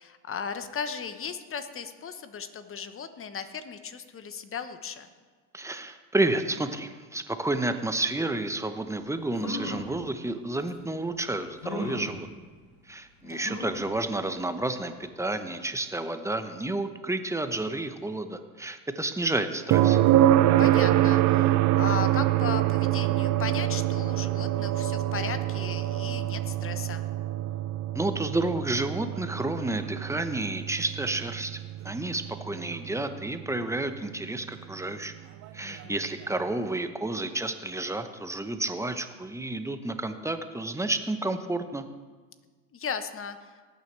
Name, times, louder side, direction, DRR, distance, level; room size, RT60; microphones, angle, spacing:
voice 1, 0.0-5.1 13.2-13.5 20.6-27.0 35.6-36.0 42.7-43.6, left 6 dB, 30° left, 10 dB, 1.1 m, -36 dB
voice 2, 5.5-12.3 12.9-14.9 15.2-20.0 27.9-31.6 31.8-35.3 35.5-41.8, right 2 dB, 5° right, 9 dB, 0.9 m, -30 dB
sound 1, 8.9-9.0 9.3-9.9 10.7-10.8 11.6-12.1 13.4-13.9 14.4-14.5 14.8-14.9, left 1 dB, 65° left, 3.1 m, -35 dB
sound 2, 19.7-33.6 35.8-35.9, right 13 dB, 40° right, 0.7 m, -25 dB
19.0 x 9.2 x 3.4 m, 1.4 s
hypercardioid pair, 80°, 43 cm